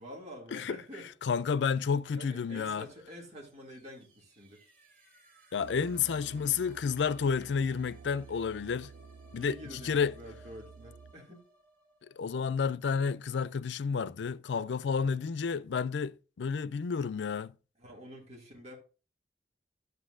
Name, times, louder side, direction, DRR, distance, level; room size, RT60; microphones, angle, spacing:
voice 1, 0.0-1.1 2.2-4.6 9.3-11.4 14.9-15.2 17.8-18.8, equal, 40° right, 2.4 m, -48 dB
voice 2, 1.2-2.9 5.5-8.9 9.3-9.6 9.8-10.1 12.2-17.5, left 6 dB, 90° left, 0.4 m, -30 dB
sound 1, 3.4-13.1, right 1 dB, 60° right, 2.7 m, -62 dB
sound 2, 5.6-11.1, right 5 dB, 75° right, 0.4 m, -51 dB
11.5 x 7.9 x 2.5 m
head